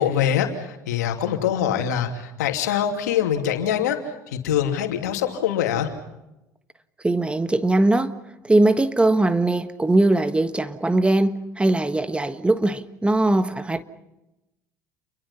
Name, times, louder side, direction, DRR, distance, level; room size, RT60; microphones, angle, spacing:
voice 1, 0.0-5.9, left 9 dB, 85° left, 5 dB, 2.9 m, -24 dB
voice 2, 7.0-8.1 8.4-13.8, right 2 dB, 10° right, 12 dB, 1.5 m, -20 dB
29.5 x 23.0 x 5.7 m, 0.95 s
hypercardioid pair, 80°, 9 cm